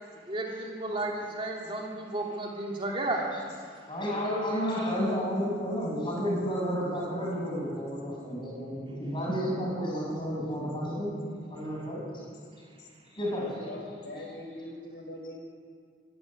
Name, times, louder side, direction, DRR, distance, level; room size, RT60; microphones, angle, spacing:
voice 1, 0.3-3.3, right 2 dB, 30° right, -1 dB, 3.1 m, -33 dB
voice 2, 3.9-11.2 11.5-12.0 13.1-13.7, equal, 25° left, -2 dB, 6.6 m, -31 dB
voice 3, 13.6-15.4, left 1 dB, 85° left, 1 dB, 5.1 m, -41 dB
25.0 x 12.0 x 9.8 m, 2.1 s
head